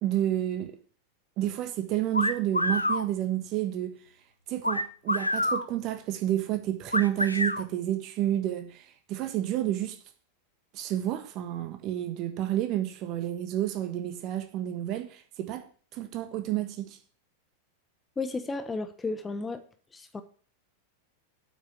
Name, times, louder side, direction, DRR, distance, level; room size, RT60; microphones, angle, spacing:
voice 1, 0.0-0.7 1.4-4.0 4.5-8.8 9.1-10.0 10.7-15.6 15.9-16.9, right 13 dB, 40° right, 1.4 m, -30 dB
sound 1, 2.1-3.1 4.6-5.7 6.9-7.6, left 1 dB, 85° left, 0.6 m, -27 dB
voice 2, 18.2-19.6 19.9-20.2, left 3 dB, 15° left, 0.9 m, -33 dB
8.3 x 6.0 x 8.0 m
figure-of-eight pair, 90°, 0 cm